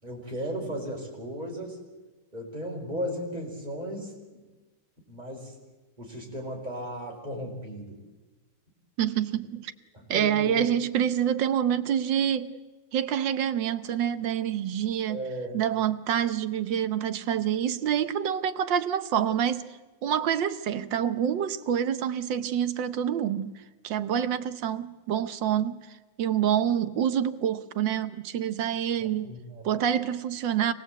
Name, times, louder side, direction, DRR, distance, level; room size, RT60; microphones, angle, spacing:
voice 1, 0.0-1.8 2.3-4.4 5.1-5.6 6.0-8.0 9.9-10.7 15.1-15.5 29.0-29.6, equal, 25° right, 5.3 m, -36 dB
voice 2, 9.0-9.7 10.1-12.5 12.9-15.2 15.5-29.3 29.6-30.7, right 9 dB, 80° right, 1.6 m, -27 dB
25.5 x 19.5 x 8.0 m
omnidirectional pair, 2.0 m